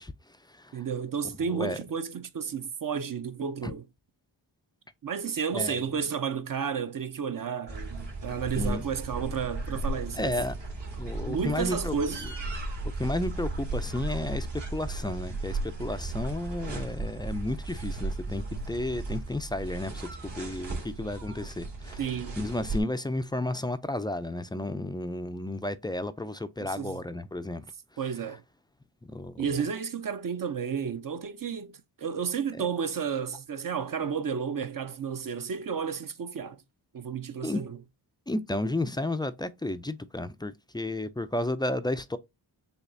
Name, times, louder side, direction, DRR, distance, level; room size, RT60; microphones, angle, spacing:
voice 1, 0.0-0.8 1.5-1.8 3.6-3.7 5.5-5.9 8.6-8.8 10.1-10.6 11.0-12.0 12.2-12.3 13.0-27.7 29.0-29.6 37.4-37.6 38.3-42.2, left 1 dB, 10° left, 0.3 m, -32 dB
voice 2, 0.7-3.8 5.0-10.4 11.3-12.3 22.0-22.4 26.6-27.0 28.0-28.4 29.4-36.6 36.9-37.8, right 6 dB, 45° right, 0.5 m, -32 dB
sound 1, 7.7-22.8, right 2 dB, 65° right, 2.0 m, -35 dB
6.7 x 2.3 x 2.6 m
cardioid pair, 60°, 47 cm